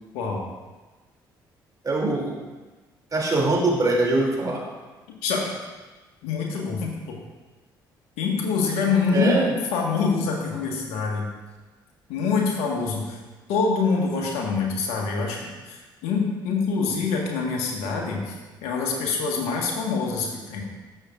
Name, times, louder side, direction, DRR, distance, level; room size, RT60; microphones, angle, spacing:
voice 1, 1.8-2.3 3.1-4.6 9.1-9.5, right 2 dB, 35° right, -2 dB, 2.9 m, -22 dB
voice 2, 6.2-7.2 8.2-11.3 12.1-13.2 13.5-20.6, left 4 dB, 70° left, 0 dB, 1.7 m, -25 dB
13.5 x 6.8 x 2.5 m, 1.2 s
hypercardioid pair, 45°, 11 cm